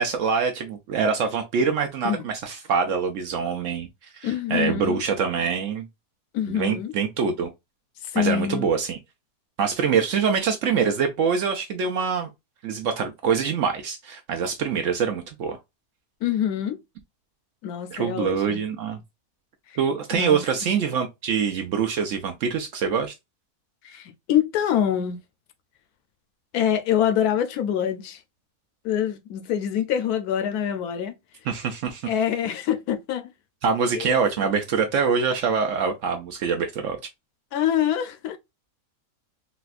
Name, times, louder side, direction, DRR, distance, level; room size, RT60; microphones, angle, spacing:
voice 1, 0.0-3.9 4.1-5.9 6.5-7.5 8.2-9.0 9.6-12.3 12.6-15.6 17.9-19.0 19.8-23.1 31.5-32.1 33.6-37.0, right 6 dB, 65° right, 0.8 m, -24 dB
voice 2, 4.2-5.0 6.3-6.9 8.0-8.7 16.2-16.8 17.6-18.6 19.7-19.8 20.1-20.4 23.8-25.2 26.5-28.2 28.8-31.1 32.1-33.3 33.9-34.5 37.5-38.4, left 9 dB, 75° left, 1.1 m, -25 dB
4.0 x 2.2 x 2.4 m
omnidirectional pair, 1.7 m